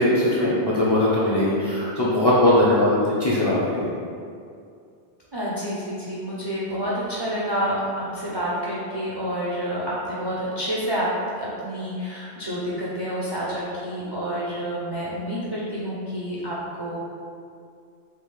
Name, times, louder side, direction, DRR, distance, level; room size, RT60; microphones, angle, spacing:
voice 1, 0.0-3.9, left 1 dB, 40° left, -8 dB, 0.4 m, -20 dB
voice 2, 5.3-11.1 11.4-17.0, equal, 45° right, -8 dB, 0.3 m, -28 dB
3.5 x 2.4 x 3.1 m, 2.4 s
omnidirectional pair, 1.1 m